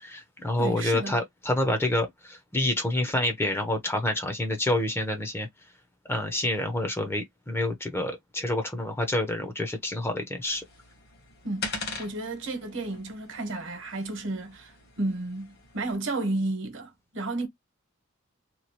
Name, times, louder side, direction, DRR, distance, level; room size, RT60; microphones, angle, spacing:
voice 1, 0.0-5.5 6.1-10.6, left 1 dB, 10° left, 0.6 m, -28 dB
voice 2, 0.6-1.2 11.4-17.5, right 2 dB, 60° right, 1.0 m, -32 dB
sound 1, 10.5-16.0, left 3 dB, 50° left, 1.1 m, -41 dB
3.0 x 2.3 x 2.7 m
head